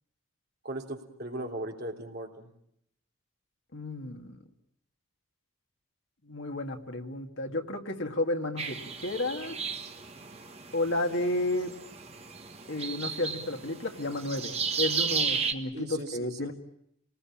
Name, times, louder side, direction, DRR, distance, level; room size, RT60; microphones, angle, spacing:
voice 1, 0.6-2.5 7.5-7.6 15.7-16.5, right 1 dB, 50° right, 2 dB, 3.3 m, -38 dB
voice 2, 3.7-4.4 6.2-9.6 10.7-11.7 12.7-16.5, left 2 dB, 65° left, 4 dB, 2.1 m, -32 dB
sound 1, 8.6-15.5, right 5 dB, 30° right, 1.6 m, -34 dB
28.0 x 19.5 x 8.7 m, 0.77 s
head